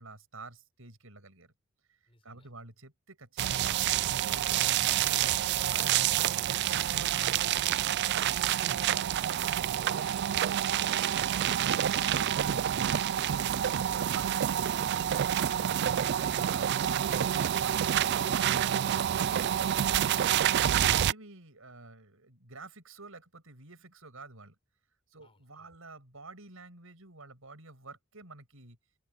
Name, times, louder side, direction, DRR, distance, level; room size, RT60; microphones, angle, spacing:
voice 1, 0.0-1.5 1.9-2.0 2.2-6.1 6.5-9.2 12.1-13.0 13.7-14.5 15.0-18.7 19.0-20.1 20.6-24.6 25.1-28.8, right 2 dB, 70° right, 7.3 m, -50 dB
voice 2, 2.1-2.5 9.8-12.3 12.8-15.5 25.2-25.7, left 3 dB, 25° left, 7.0 m, -61 dB
sound 1, 3.4-21.1, right 10 dB, 55° right, 0.3 m, -28 dB
open air
head